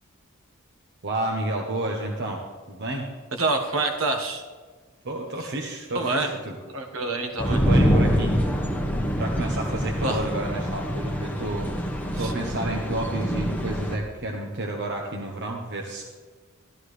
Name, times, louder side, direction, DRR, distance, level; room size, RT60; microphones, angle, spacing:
voice 1, 1.0-3.1 5.0-6.5 7.5-8.4 9.2-16.0, right 2 dB, 55° right, 1 dB, 1.0 m, -31 dB
voice 2, 3.3-4.4 5.4-5.5 5.9-6.3 6.7-7.6 10.0-10.2 12.1-12.3, right 2 dB, 70° right, 4 dB, 1.4 m, -27 dB
sound 1, 7.4-14.0, equal, 10° left, 1.1 m, -25 dB
13.0 x 13.0 x 3.3 m, 1.4 s
head